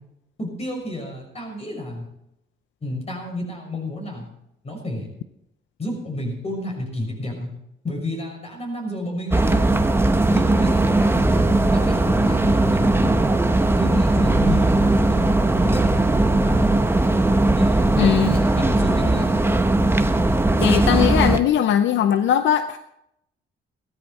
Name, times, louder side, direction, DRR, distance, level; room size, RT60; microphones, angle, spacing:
voice 1, 0.4-2.0 2.8-4.3 4.6-5.1 5.8-7.5 7.8-9.8 10.3-11.4 11.7-13.2 13.8-15.9 16.4-16.7 17.6-19.4, left 1 dB, 30° left, 1 dB, 6.2 m, -31 dB
sound 1, 9.3-21.4, right 2 dB, 10° right, 1.0 m, -18 dB
voice 2, 18.0-18.3 20.6-22.8, left 10 dB, 70° left, 10 dB, 0.7 m, -20 dB
16.0 x 13.0 x 4.3 m, 0.80 s
cardioid pair, 90°, 20 cm